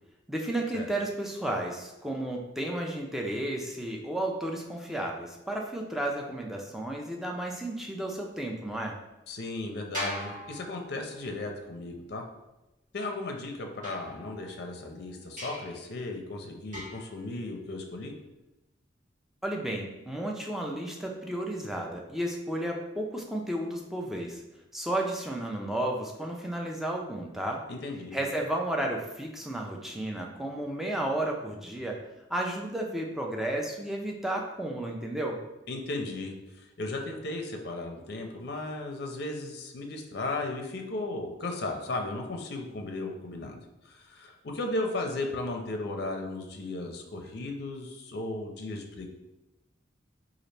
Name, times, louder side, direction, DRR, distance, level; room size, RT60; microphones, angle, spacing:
voice 1, 0.3-9.0 19.4-24.4 24.7-27.6 28.1-32.0 32.3-35.4, right 1 dB, ahead, -1 dB, 0.4 m, -33 dB
voice 2, 9.3-12.2 12.9-18.1 27.7-28.2 35.7-36.3 36.8-43.6 43.9-49.1, left 2 dB, 60° left, 3 dB, 0.5 m, -35 dB
sound 1, 9.9-11.3 13.8-14.7 15.4-15.8 16.7-17.2, equal, 45° right, 1.4 m, -40 dB
4.0 x 2.4 x 3.2 m, 0.98 s
head